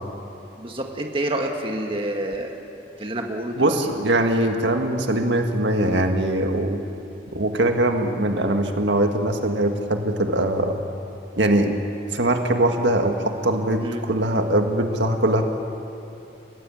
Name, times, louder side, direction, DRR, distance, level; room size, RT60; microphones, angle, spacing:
voice 1, 0.6-2.5 3.0-3.7 13.8-14.0, right 1 dB, 30° right, 2 dB, 1.9 m, -28 dB
voice 2, 3.6-6.8 7.3-10.8 11.4-11.8 12.1-15.4, right 1 dB, 80° right, 4 dB, 1.8 m, -21 dB
29.5 x 16.0 x 9.1 m, 2.8 s
head